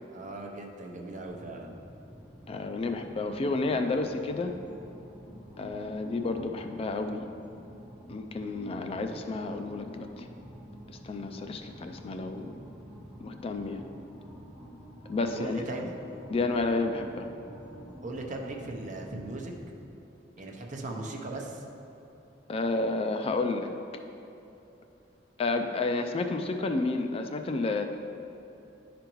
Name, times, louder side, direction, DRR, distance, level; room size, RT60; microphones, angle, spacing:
voice 1, 0.1-1.8 15.2-15.9 18.0-19.5 20.4-21.6, right 2 dB, 45° right, 1 dB, 0.7 m, -38 dB
sound 1, 1.3-19.6, equal, 5° right, 0.8 m, -48 dB
voice 2, 2.5-4.5 5.6-7.3 8.1-10.3 10.9-12.5 13.2-13.8 15.1-15.6 16.3-17.3 22.5-23.7 25.4-27.8, left 3 dB, 30° left, 6 dB, 0.3 m, -31 dB
10.5 x 5.1 x 3.0 m, 2.9 s
head